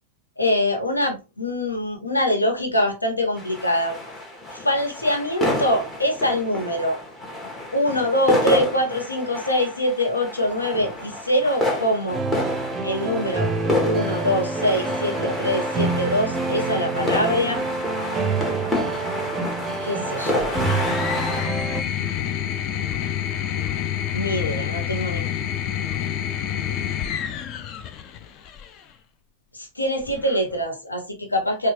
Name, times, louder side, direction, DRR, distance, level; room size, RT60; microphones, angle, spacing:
voice 1, 0.4-4.0 4.5-7.0 7.7-12.2 12.8-13.5 13.8-17.6 19.8-20.6 24.1-25.3 29.6-31.7, equal, 80° left, 1.0 m, -24 dB
sound 1, 3.4-21.5, left 1 dB, 20° left, 1.2 m, -29 dB
sound 2, 12.1-21.8, right 3 dB, 25° right, 0.6 m, -27 dB
sound 3, 20.4-28.8 30.0-30.6, left 10 dB, 35° left, 0.5 m, -28 dB
4.4 x 2.5 x 2.9 m
figure-of-eight pair, 90°, 0 cm